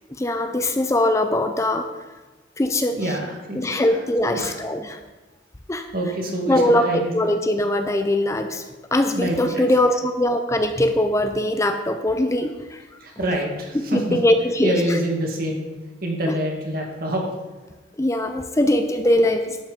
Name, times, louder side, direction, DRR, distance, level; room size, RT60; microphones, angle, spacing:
voice 1, 0.1-1.9 2.6-3.0 3.6-5.0 5.7-5.9 6.5-8.6 8.9-12.8 13.7-15.0 16.3-16.4 18.0-19.6, left 1 dB, 15° left, 7 dB, 0.5 m, -21 dB
voice 2, 2.9-4.0 4.3-4.6 5.9-7.3 9.1-9.8 13.0-14.2 14.6-15.6 16.0-17.2, right 1 dB, 55° right, 0 dB, 2.1 m, -26 dB
12.0 x 5.7 x 5.2 m, 1.2 s
head